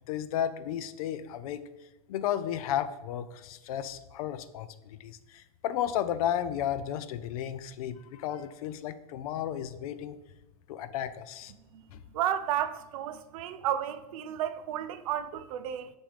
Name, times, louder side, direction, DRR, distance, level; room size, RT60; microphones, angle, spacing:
voice 1, 0.0-1.6 2.1-10.2 10.7-11.5 11.9-12.0, left 10 dB, 80° left, 0.4 m, -33 dB
voice 2, 12.1-15.9, right 10 dB, 75° right, 0.4 m, -32 dB
6.1 x 2.6 x 3.2 m
supercardioid pair, 135°, 18 cm